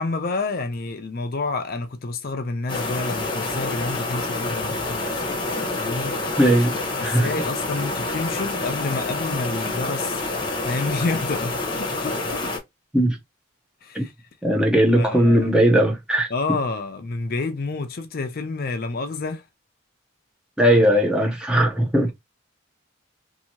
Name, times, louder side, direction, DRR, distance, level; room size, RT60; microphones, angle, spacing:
voice 1, 0.0-5.2 5.8-6.2 7.0-10.2 10.6-12.5 13.8-14.1 14.9-15.5 16.3-19.4, left 3 dB, 45° left, 0.5 m, -29 dB
sound 1, 2.7-12.6, left 2 dB, 25° left, 0.9 m, -27 dB
voice 2, 6.4-7.3 12.9-13.2 13.9-14.0 14.4-16.3 20.6-22.1, right 1 dB, 5° right, 0.7 m, -18 dB
2.8 x 2.6 x 2.8 m
head